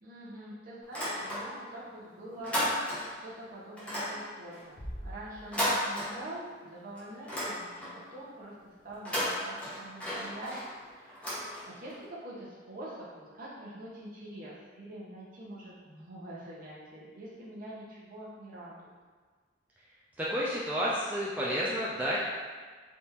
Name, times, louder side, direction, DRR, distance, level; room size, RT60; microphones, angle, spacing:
voice 1, 0.0-10.6 10.9-11.3 11.7-18.9, right 1 dB, 50° right, -7 dB, 0.8 m, -45 dB
sound 1, 0.8-1.8 2.1-3.3 3.8-6.6 7.0-8.1 8.9-12.0, equal, 5° left, 0.7 m, -35 dB
Bass drum, 4.8-6.2, equal, 55° left, 0.7 m, -43 dB
voice 2, 20.2-22.2, equal, 10° right, -7 dB, 0.3 m, -30 dB
3.5 x 2.5 x 2.8 m, 1.5 s
head